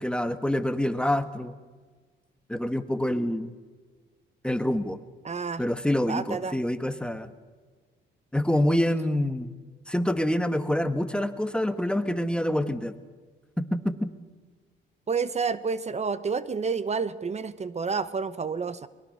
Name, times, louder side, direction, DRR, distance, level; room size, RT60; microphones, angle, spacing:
voice 1, 0.0-1.6 2.5-3.5 4.4-5.0 5.6-7.3 8.3-9.6 9.9-12.9 13.6-14.1, left 1 dB, 5° left, 10 dB, 1.5 m, -26 dB
voice 2, 5.2-5.6 6.1-6.6 15.1-18.9, right 5 dB, 35° right, 15 dB, 1.0 m, -29 dB
23.0 x 21.5 x 6.7 m, 1.5 s
cardioid pair, 90°, 20 cm